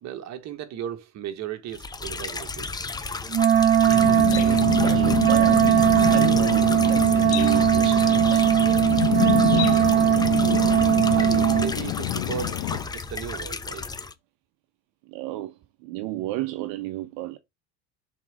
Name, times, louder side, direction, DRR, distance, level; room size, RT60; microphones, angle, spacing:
voice 1, 0.0-2.7 11.1-13.9, right 10 dB, 50° right, 1.6 m, -36 dB
sound 1, 1.7-14.1, left 4 dB, 10° left, 0.6 m, -33 dB
Wind instrument woodwind instrument, 3.3-11.7, right 9 dB, 30° right, 0.5 m, -19 dB
sound 2, 3.9-12.8, left 16 dB, 70° left, 1.0 m, -27 dB
voice 2, 4.3-8.5 15.1-17.4, right 16 dB, 70° right, 0.9 m, -33 dB
6.0 x 4.0 x 4.8 m
supercardioid pair, 115°, 36 cm